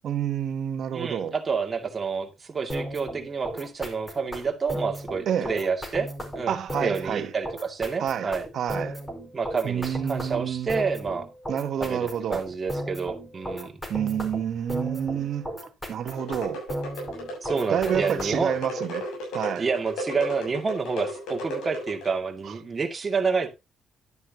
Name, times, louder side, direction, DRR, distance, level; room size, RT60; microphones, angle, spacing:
voice 1, 0.0-1.3 5.3-5.5 6.5-7.3 8.0-9.0 9.6-10.7 11.5-12.4 13.9-15.5 15.9-16.7 17.7-19.0 19.3-19.7, right 9 dB, 65° right, 1.2 m, -28 dB
voice 2, 0.9-6.1 6.3-8.5 9.3-11.3 11.8-13.7 17.4-18.5 19.6-23.5, right 5 dB, 30° right, 2.3 m, -29 dB
sound 1, 2.7-18.6, equal, 15° left, 4.7 m, -35 dB
sound 2, 16.1-22.2, equal, 90° left, 7.1 m, -34 dB
11.0 x 9.6 x 2.9 m
cardioid pair, 90°, 0 cm